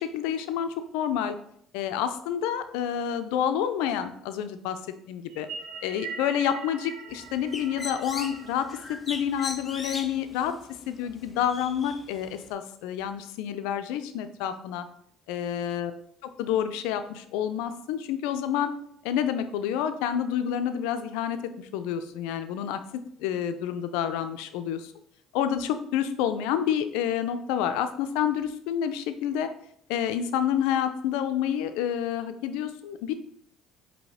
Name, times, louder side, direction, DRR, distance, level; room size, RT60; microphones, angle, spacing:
voice 1, 0.0-1.3 1.7-4.8 5.1-5.5 5.8-10.5 10.9-14.9 15.3-15.9 16.4-18.7 19.0-22.8 23.2-24.9 25.3-29.5 29.9-33.1, left 9 dB, 80° left, 10 dB, 0.4 m, -28 dB
sound 1, 5.3-9.8, right 5 dB, 70° right, 0.5 m, -42 dB
Bird, 7.1-12.5, left 3 dB, 25° left, 0.5 m, -40 dB
4.7 x 2.8 x 4.1 m, 0.69 s
supercardioid pair, 75°, 0 cm